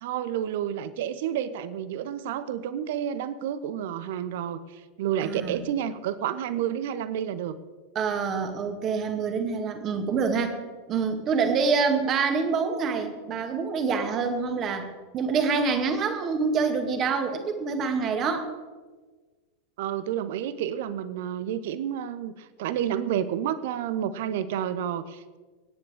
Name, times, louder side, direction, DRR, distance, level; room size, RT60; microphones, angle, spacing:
voice 1, 0.0-7.6 19.8-25.4, right 10 dB, 55° right, 15 dB, 0.8 m, -30 dB
voice 2, 5.2-5.6 8.0-10.5 10.9-14.9 15.1-18.5, right 5 dB, 30° right, 6 dB, 2.0 m, -26 dB
24.0 x 10.0 x 3.6 m, 1.4 s
figure-of-eight pair, 90°, 0 cm